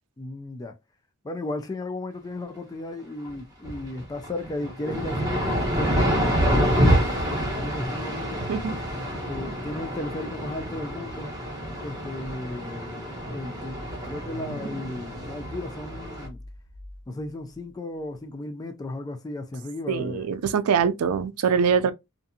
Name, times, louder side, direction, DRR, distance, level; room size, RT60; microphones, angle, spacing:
voice 1, 0.2-0.8 1.2-8.5 9.1-11.3 11.7-16.4 17.1-20.3 21.8-21.9, left 2 dB, 15° left, 0.3 m, -35 dB
sound 1, 3.3-3.4 3.6-16.3, equal, 15° right, 1.0 m, -27 dB
voice 2, 8.4-8.8 19.9-21.9, right 6 dB, 80° right, 0.4 m, -23 dB
sound 2, 13.6-17.3, right 1 dB, 45° right, 0.9 m, -41 dB
2.5 x 2.3 x 2.6 m
head